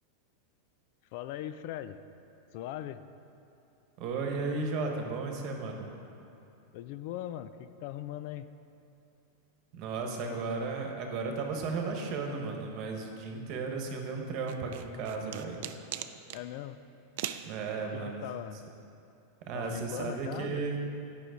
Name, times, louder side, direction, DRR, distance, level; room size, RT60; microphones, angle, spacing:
voice 1, 1.1-2.0 2.5-3.1 6.7-8.5 10.2-10.4 16.3-16.8 17.9-18.6 19.5-20.6, left 12 dB, 60° left, 13 dB, 0.3 m, -40 dB
voice 2, 4.0-5.9 9.7-15.6 17.4-18.3 19.4-20.8, right 4 dB, 50° right, 2 dB, 1.2 m, -34 dB
sound 1, 14.5-16.4 17.2-17.5, right 12 dB, 65° right, 0.4 m, -39 dB
9.2 x 5.5 x 5.0 m, 2.8 s
supercardioid pair, 130°, 0 cm